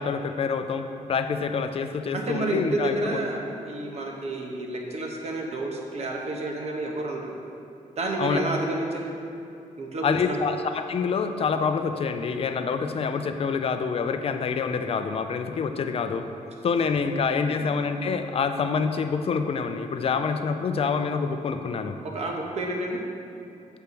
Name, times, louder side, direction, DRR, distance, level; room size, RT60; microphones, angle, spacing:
voice 1, 0.0-3.2 8.2-8.4 10.0-16.3 16.6-22.0, left 5 dB, 45° left, 7 dB, 0.4 m, -26 dB
voice 2, 2.1-7.3 8.0-9.1 9.8-10.5 22.1-23.0, right 2 dB, 50° right, 1 dB, 1.0 m, -30 dB
7.0 x 4.5 x 6.8 m, 2.6 s
wide cardioid pair, 160°, 14 cm